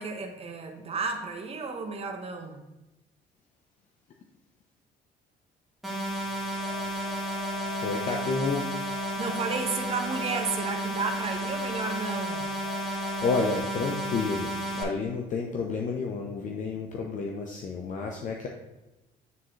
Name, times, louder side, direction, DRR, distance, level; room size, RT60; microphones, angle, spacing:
voice 1, 0.0-2.6 9.2-12.4, right 4 dB, 35° right, 4 dB, 1.0 m, -32 dB
sound 1, 5.8-14.8, right 1 dB, ahead, 2.1 m, -32 dB
sound 2, 6.6-13.6, left 8 dB, 90° left, 0.8 m, -43 dB
voice 2, 7.8-8.6 13.2-18.5, left 4 dB, 50° left, 1 dB, 0.8 m, -30 dB
9.4 x 3.7 x 3.2 m, 1.0 s
cardioid pair, 110°, 17 cm